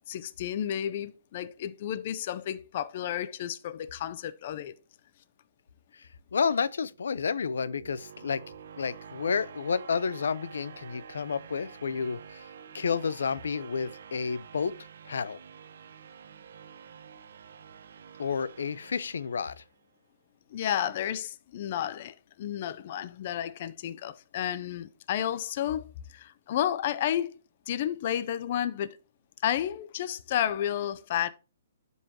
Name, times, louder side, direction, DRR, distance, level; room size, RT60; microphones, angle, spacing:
voice 1, 0.1-4.7 20.5-27.4 27.7-29.0 29.4-31.3, left 10 dB, 35° left, 0.5 m, -32 dB
voice 2, 6.3-8.4 8.8-12.4 12.7-14.7 15.1-15.4 18.2-19.6, left 6 dB, 85° left, 0.6 m, -30 dB
sound 1, 6.9-19.8, right 7 dB, 60° right, 0.8 m, -49 dB
12.0 x 5.5 x 2.8 m
hypercardioid pair, 175°, 0 cm